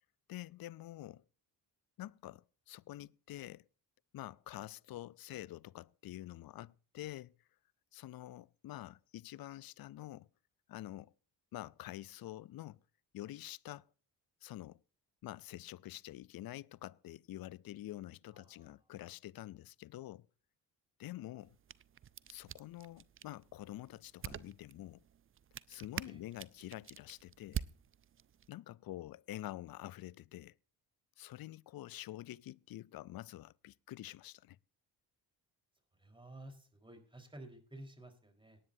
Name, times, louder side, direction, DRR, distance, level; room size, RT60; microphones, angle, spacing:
voice 1, 0.3-1.2 2.0-3.6 4.1-7.3 7.9-10.3 10.7-11.1 11.5-12.8 13.1-13.9 14.4-14.8 15.2-20.3 21.0-21.6 22.3-25.0 25.7-27.6 28.5-30.5 31.2-34.6, left 14 dB, 50° left, 0.5 m, -47 dB
voice 2, 18.3-18.9 26.0-26.2 35.9-38.6, right 1 dB, 10° right, 4.2 m, -53 dB
sound 1, 21.4-28.5, right 9 dB, 30° right, 0.4 m, -47 dB
18.5 x 10.0 x 2.7 m
supercardioid pair, 60°, 47 cm